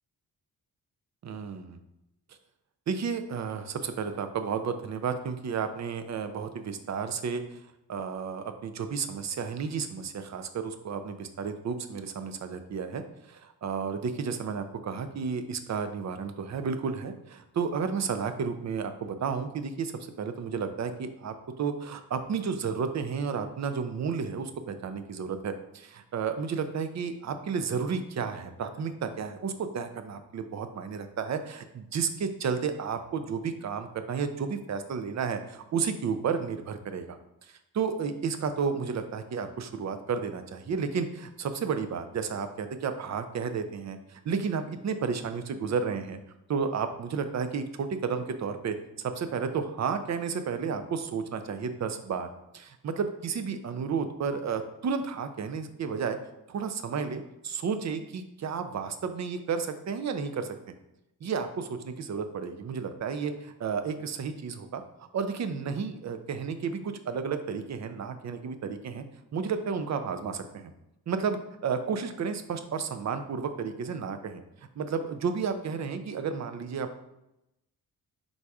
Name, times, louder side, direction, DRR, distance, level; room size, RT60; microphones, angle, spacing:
voice 1, 1.2-1.8 2.9-7.6 7.9-13.0 13.3-37.2 37.5-46.2 46.5-52.3 52.5-56.2 56.5-60.6 61.2-64.8 65.1-69.0 69.3-70.7 71.1-74.4 74.8-77.0, right 6 dB, 50° right, 8 dB, 0.5 m, -32 dB
4.0 x 2.4 x 4.6 m, 0.87 s
cardioid pair, 70°, 37 cm